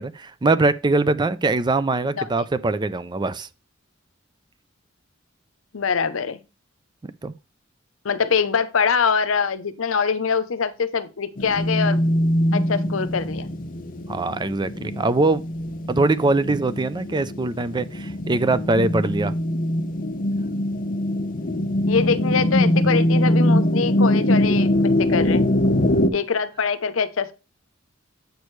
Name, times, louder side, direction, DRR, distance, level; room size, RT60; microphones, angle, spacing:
voice 1, 0.0-3.5 7.0-7.3 14.1-15.4 15.9-19.3, right 2 dB, 20° right, 0.4 m, -22 dB
voice 2, 5.7-6.4 8.0-12.0 12.5-13.5 21.9-25.4 26.1-27.3, left 5 dB, 80° left, 0.7 m, -23 dB
sound 1, 11.4-26.1, left 1 dB, 45° left, 0.7 m, -22 dB
8.2 x 6.3 x 3.1 m
head